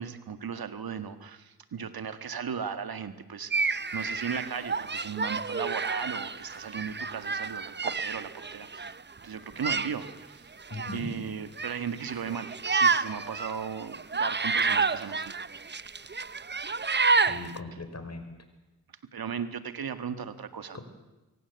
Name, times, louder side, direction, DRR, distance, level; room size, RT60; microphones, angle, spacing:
voice 1, 0.0-9.0 9.2-10.5 10.9-15.3 19.1-20.8, right 7 dB, 60° right, 10 dB, 1.8 m, -37 dB
sound 1, 3.5-8.9 9.6-10.1 10.6-11.1 11.6-11.8 12.0-17.6, right 4 dB, 25° right, 0.9 m, -29 dB
voice 2, 10.7-11.1 17.3-18.3 20.7-20.8, left 2 dB, 40° left, 8 dB, 5.2 m, -38 dB
23.5 x 17.0 x 8.2 m, 1.1 s
supercardioid pair, 45°, 40 cm